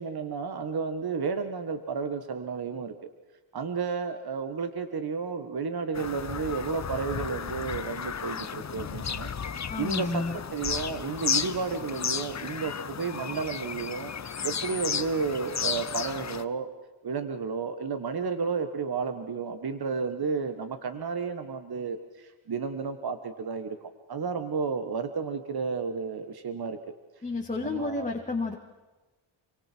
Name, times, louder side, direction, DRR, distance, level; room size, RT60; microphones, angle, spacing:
voice 1, 0.0-2.9 3.5-14.1 14.4-16.7 17.0-26.8 27.6-28.1, right 5 dB, 50° right, 8 dB, 1.6 m, -32 dB
Bird vocalization bird call bird song, 5.9-16.4, left 7 dB, 35° left, 0.8 m, -33 dB
voice 2, 9.7-10.3 27.2-28.6, left 3 dB, 15° left, 1 dB, 2.1 m, -31 dB
28.0 x 24.5 x 4.6 m, 1.2 s
wide cardioid pair, 115°, 49 cm